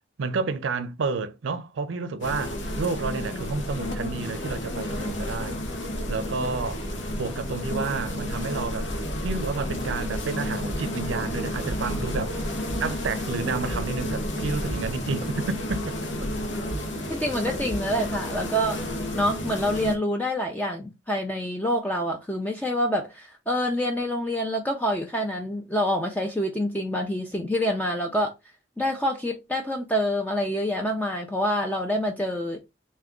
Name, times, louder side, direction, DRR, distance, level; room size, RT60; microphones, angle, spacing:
voice 1, 0.2-5.6 6.1-8.9 9.2-12.4 12.8-16.0, right 4 dB, 80° right, 0.4 m, -30 dB
sound 1, 2.2-20.0, left 1 dB, 75° left, 0.8 m, -31 dB
sound 2, 10.7-11.8 12.1-12.3 12.7-12.8 13.3-14.3 14.7-18.7, right 2 dB, 35° right, 0.7 m, -38 dB
voice 2, 17.1-18.8 19.2-28.3 28.8-32.6, equal, 10° left, 0.3 m, -27 dB
3.5 x 2.1 x 3.6 m
head